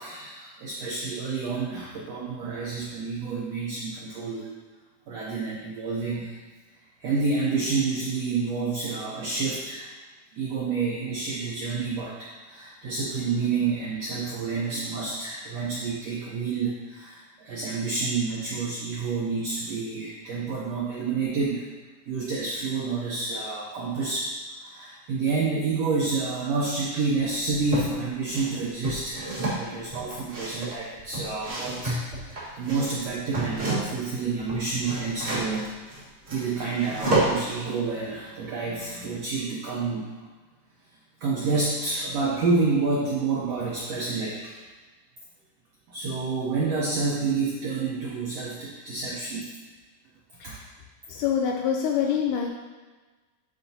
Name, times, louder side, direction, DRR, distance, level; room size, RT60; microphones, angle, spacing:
voice 1, 0.0-4.5 5.1-6.4 7.0-9.9 10.3-21.7 22.1-35.7 36.3-40.3 41.2-44.6 45.9-49.5 50.4-50.6, right 4 dB, 80° right, -5 dB, 1.4 m, -29 dB
sound 1, 27.2-27.9 28.3-34.1 34.4-37.5, right 2 dB, 50° right, 0.7 m, -30 dB
voice 2, 51.1-52.5, left 8 dB, 80° left, 1 dB, 1.9 m, -25 dB
10.0 x 4.0 x 2.8 m, 1.3 s
omnidirectional pair, 4.0 m